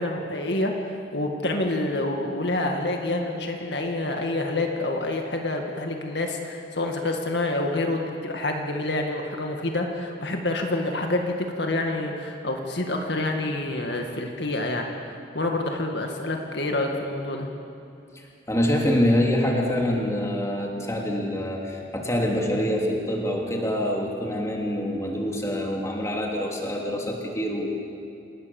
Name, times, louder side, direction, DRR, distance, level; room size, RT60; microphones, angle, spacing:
voice 1, 0.0-14.9 15.3-17.5, left 2 dB, 60° left, 2 dB, 2.0 m, -27 dB
voice 2, 18.1-27.7, equal, 15° left, 0 dB, 2.9 m, -25 dB
27.5 x 19.0 x 7.2 m, 2.7 s
head